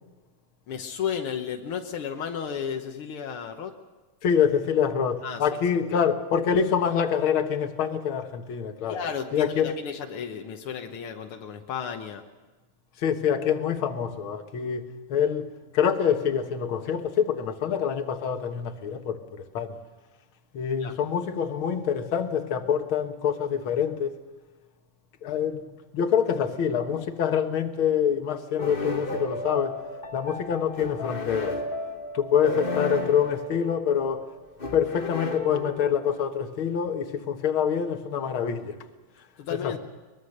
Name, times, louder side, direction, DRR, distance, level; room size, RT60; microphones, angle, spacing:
voice 1, 0.7-3.8 5.2-5.7 8.9-12.2 20.8-20.9 39.4-39.8, left 7 dB, 75° left, 1.3 m, -33 dB
voice 2, 4.2-9.0 9.3-9.7 13.0-19.8 20.5-24.2 25.2-25.7 25.9-29.8 30.1-31.6 32.1-34.2 34.7-38.7 39.6-39.8, left 8 dB, 55° left, 1.5 m, -26 dB
sound 1, 28.6-36.3, left 2 dB, 35° left, 0.8 m, -33 dB
23.0 x 21.5 x 6.6 m
omnidirectional pair, 4.0 m